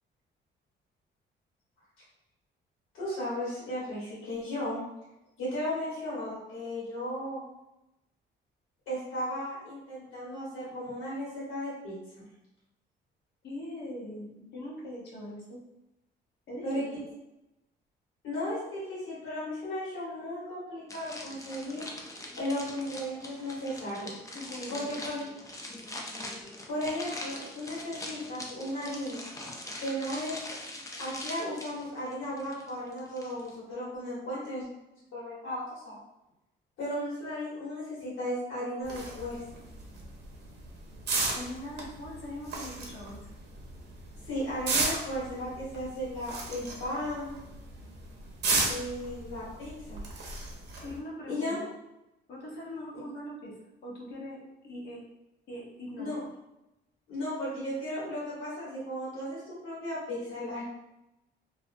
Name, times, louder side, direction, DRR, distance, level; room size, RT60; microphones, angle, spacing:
voice 1, 2.9-4.8 5.4-7.4 8.9-12.2 16.6-16.9 18.2-21.8 22.4-24.2 24.7-25.3 26.7-29.2 29.8-30.4 31.0-34.6 35.1-36.0 36.8-39.6 44.2-47.3 48.6-50.0 51.3-51.6 52.9-53.0 56.0-56.2 57.1-60.6, left 1 dB, 85° left, -9 dB, 1.2 m, -35 dB
voice 2, 13.4-15.6 16.5-16.8 24.3-25.0 41.3-43.2 50.8-51.7 52.3-53.5 53.8-55.0 55.5-56.2, left 1 dB, 55° left, -4 dB, 0.9 m, -41 dB
sound 1, 20.9-33.5, left 1 dB, 15° left, 0.4 m, -42 dB
sound 2, 38.8-51.0, right 3 dB, 55° right, 0.6 m, -35 dB
2.5 x 2.0 x 2.5 m, 0.92 s
cardioid pair, 90°, 20 cm